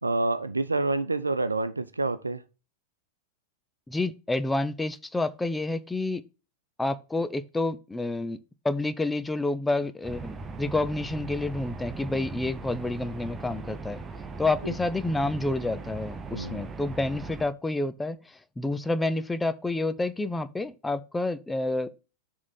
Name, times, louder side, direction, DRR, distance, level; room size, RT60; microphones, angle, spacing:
voice 1, 0.0-2.4 14.6-14.7 16.3-16.7, right 2 dB, 80° right, 0.6 m, -28 dB
voice 2, 3.9-6.2 6.8-8.4 8.6-14.0 14.4-21.9, left 2 dB, 10° left, 0.6 m, -29 dB
sound 1, 10.0-17.5, right 3 dB, 20° right, 0.9 m, -39 dB
7.3 x 3.7 x 6.1 m
figure-of-eight pair, 90°, 0 cm